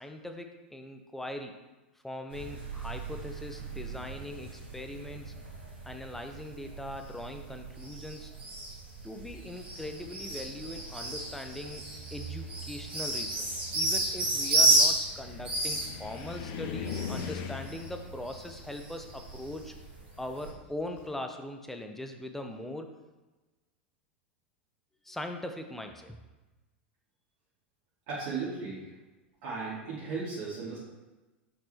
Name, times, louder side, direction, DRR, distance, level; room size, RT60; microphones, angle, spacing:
voice 1, 0.0-1.6 2.0-5.4 5.8-8.3 9.0-13.5 13.7-19.7 20.2-22.9 25.0-26.2, left 1 dB, 5° left, 5 dB, 0.9 m, -41 dB
sound 1, 2.3-20.5, right 2 dB, 75° right, 2.7 m, -33 dB
Car, 12.9-21.1, left 6 dB, 45° left, 0.8 m, -42 dB
voice 2, 28.1-28.9 29.4-30.8, right 4 dB, 55° right, -8 dB, 2.5 m, -36 dB
6.4 x 6.1 x 4.4 m, 1.1 s
figure-of-eight pair, 90°, 6 cm